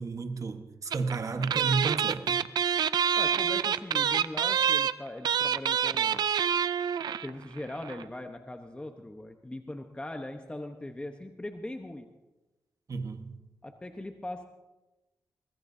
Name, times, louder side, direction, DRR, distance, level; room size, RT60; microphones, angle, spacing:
voice 1, 0.0-2.4 12.9-13.3, right 4 dB, 50° right, 1.3 m, -32 dB
sound 1, 0.9-1.1 1.4-7.3 7.6-7.7 7.8-8.0, right 8 dB, 85° right, 0.4 m, -27 dB
voice 2, 3.2-6.3 7.2-12.1 13.6-14.4, left 1 dB, 15° left, 1.0 m, -40 dB
22.5 x 19.5 x 2.7 m
cardioid pair, 80°, 7 cm